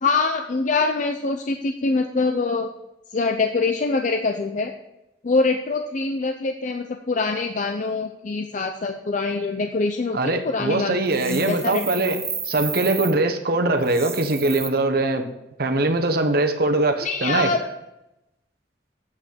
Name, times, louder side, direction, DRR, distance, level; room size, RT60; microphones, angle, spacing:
voice 1, 0.0-2.7 3.1-4.7 5.2-12.2 17.0-17.7, left 3 dB, 45° left, 5 dB, 0.5 m, -24 dB
voice 2, 10.1-12.2 12.4-15.2 15.6-17.5, right 2 dB, 60° right, 6 dB, 1.0 m, -22 dB
sound 1, 11.1-13.1 13.8-14.7, right 6 dB, 15° right, 0.6 m, -32 dB
8.2 x 5.9 x 6.5 m, 0.89 s
head